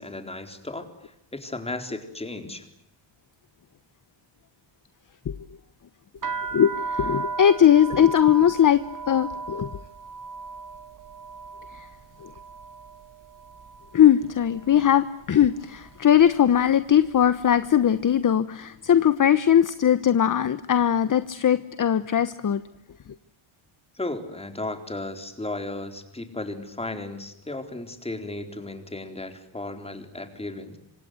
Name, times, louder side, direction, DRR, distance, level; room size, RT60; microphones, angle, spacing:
voice 1, 0.0-2.6 23.9-30.8, left 2 dB, 10° left, 7 dB, 4.1 m, -35 dB
sound 1, 6.2-14.1 14.4-15.0 15.7-15.9 16.2-17.7, right 4 dB, 40° right, 1.3 m, -36 dB
voice 2, 6.5-9.7 11.7-11.9 12.2-12.3 13.9-22.6, left 9 dB, 40° left, 13 dB, 1.1 m, -20 dB
27.0 x 26.0 x 7.8 m, 0.83 s
cardioid pair, 135°, 49 cm